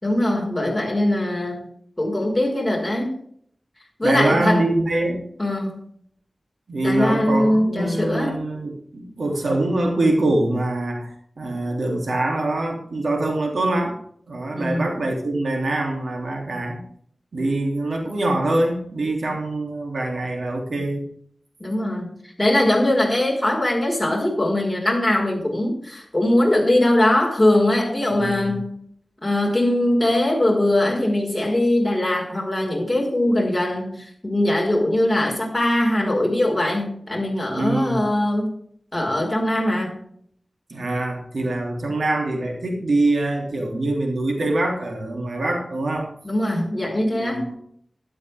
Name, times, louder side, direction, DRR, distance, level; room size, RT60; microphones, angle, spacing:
voice 1, 0.0-1.7 2.0-3.1 4.0-4.6 5.4-5.8 6.8-8.4 14.6-14.9 21.6-28.8 29.2-38.6 38.9-40.0 46.2-47.4, left 1 dB, 15° left, -2 dB, 5.1 m, -21 dB
voice 2, 4.0-5.3 6.7-14.0 14.3-16.8 17.3-21.0 28.1-28.5 37.5-38.0 40.7-46.1 47.0-47.6, right 2 dB, 80° right, 1 dB, 3.1 m, -24 dB
12.5 x 12.0 x 3.6 m, 0.63 s
wide cardioid pair, 85°, 0 cm